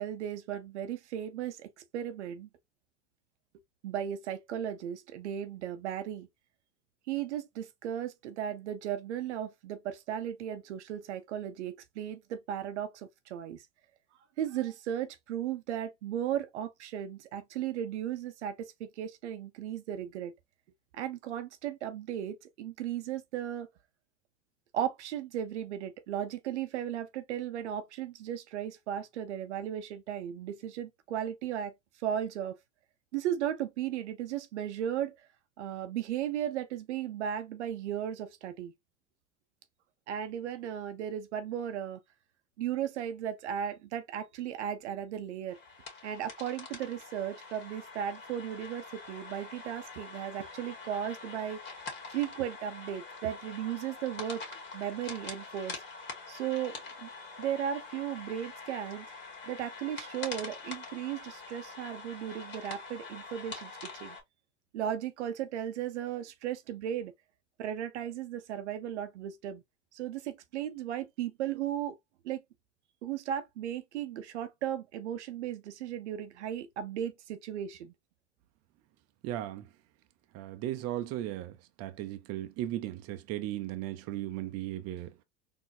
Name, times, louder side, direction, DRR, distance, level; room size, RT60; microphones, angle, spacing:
voice 1, 0.0-2.5 3.8-6.3 7.1-13.6 14.4-20.3 20.9-23.7 24.7-31.7 32.0-32.6 33.1-35.2 35.6-38.7 40.1-42.0 42.6-45.6 46.0-51.8 52.1-54.4 54.7-55.8 56.3-57.1 57.4-59.1 59.4-64.2 64.7-67.1 67.6-69.6 69.9-72.0 72.2-72.4 73.0-77.9, right 10 dB, 80° right, 0.8 m, -36 dB
sound 1, 45.5-64.2, left 4 dB, 35° left, 2.0 m, -45 dB
voice 2, 79.2-79.6 80.3-85.1, right 13 dB, 45° right, 0.7 m, -36 dB
4.1 x 3.0 x 2.7 m
hypercardioid pair, 95°, 34 cm